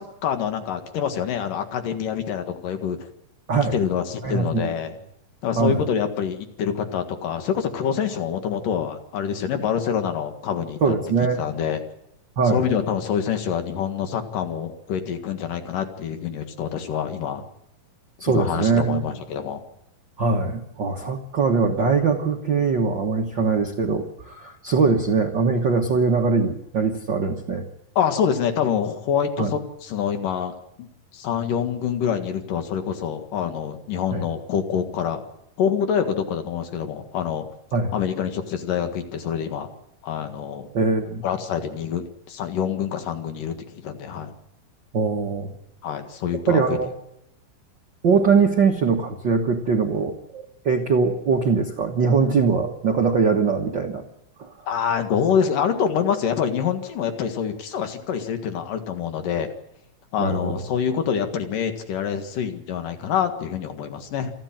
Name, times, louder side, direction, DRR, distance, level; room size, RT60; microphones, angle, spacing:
voice 1, 0.0-3.0 3.7-4.9 5.4-10.9 11.4-11.8 12.4-17.4 18.3-19.6 21.0-21.1 28.0-30.9 31.1-35.2 35.6-37.5 37.9-39.7 40.0-40.7 41.2-44.3 45.8-46.8 54.7-59.5 60.1-64.3, left 8 dB, 65° left, 6 dB, 3.3 m, -26 dB
voice 2, 4.2-4.8 5.5-5.8 10.8-11.4 12.4-12.7 18.2-19.0 20.2-27.7 29.4-29.5 34.1-34.2 37.7-37.9 40.7-41.2 44.9-45.5 46.5-46.9 48.0-54.0 54.4-54.5 60.2-60.5, right 4 dB, 80° right, 2 dB, 1.0 m, -22 dB
28.0 x 10.5 x 8.9 m, 0.84 s
omnidirectional pair, 4.3 m